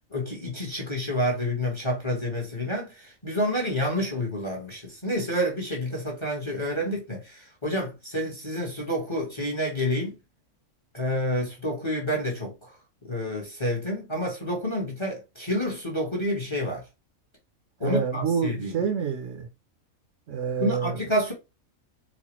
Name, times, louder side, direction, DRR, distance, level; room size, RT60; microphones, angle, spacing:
voice 1, 0.1-10.2 10.9-12.7 13.0-16.8 17.8-18.7 20.6-21.3, equal, 25° left, 0.9 m, -29 dB
voice 2, 17.8-19.5 20.3-21.0, right 6 dB, 65° right, 0.9 m, -27 dB
4.2 x 2.1 x 2.9 m
omnidirectional pair, 1.5 m